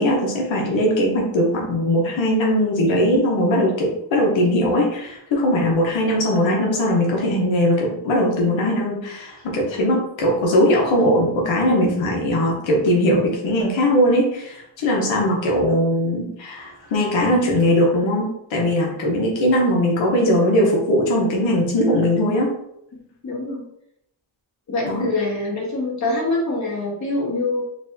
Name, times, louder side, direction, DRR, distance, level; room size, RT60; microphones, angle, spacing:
voice 1, 0.0-22.5 24.8-25.1, equal, 85° left, -1 dB, 0.9 m, -20 dB
voice 2, 23.2-23.6 24.7-27.6, left 2 dB, 40° left, -3 dB, 1.3 m, -24 dB
4.5 x 2.6 x 2.6 m, 0.77 s
cardioid pair, 125°, 45 cm